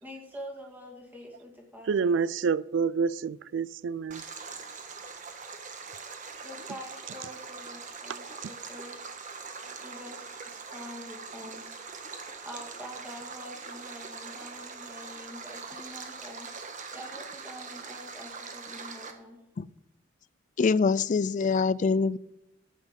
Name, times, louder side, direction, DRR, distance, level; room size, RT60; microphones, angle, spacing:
voice 1, 0.0-2.2 6.4-9.0 9.8-11.8 12.4-16.5 16.9-19.4, equal, 10° right, 1 dB, 2.4 m, -46 dB
voice 2, 1.9-4.2, right 5 dB, 65° right, 20 dB, 0.4 m, -27 dB
Stream, 4.1-19.1, right 5 dB, 40° right, 1.3 m, -42 dB
voice 3, 20.6-22.2, left 4 dB, 40° left, 20 dB, 0.3 m, -24 dB
13.0 x 8.5 x 5.3 m, 0.86 s
head